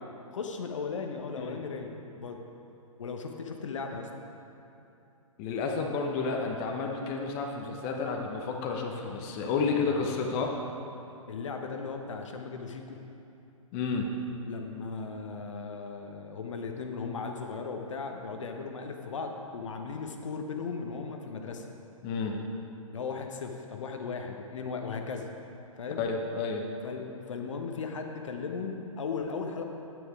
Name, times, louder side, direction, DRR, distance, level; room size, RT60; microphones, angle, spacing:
voice 1, 0.3-1.9 2.2-2.4 3.0-4.1 9.6-10.2 11.3-13.0 14.5-21.7 22.9-25.3 25.8-26.0 26.8-29.6, left 5 dB, 60° left, 4 dB, 1.0 m, -37 dB
voice 2, 5.4-10.5 13.7-14.1 22.0-22.4 26.0-26.6, left 4 dB, 30° left, 2 dB, 0.9 m, -31 dB
9.2 x 9.1 x 4.8 m, 2.8 s
figure-of-eight pair, 120°, 18 cm